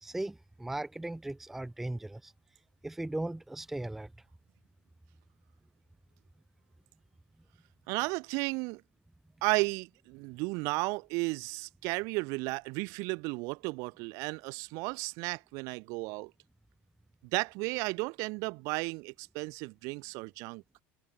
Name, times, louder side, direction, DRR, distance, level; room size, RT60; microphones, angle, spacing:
voice 1, 0.0-2.3 2.8-4.1, right 1 dB, 5° right, 0.5 m, -37 dB
voice 2, 7.9-8.8 9.4-16.3 17.3-20.6, right 28 dB, 70° right, 1.2 m, -34 dB
cardioid pair, 130°, 6 cm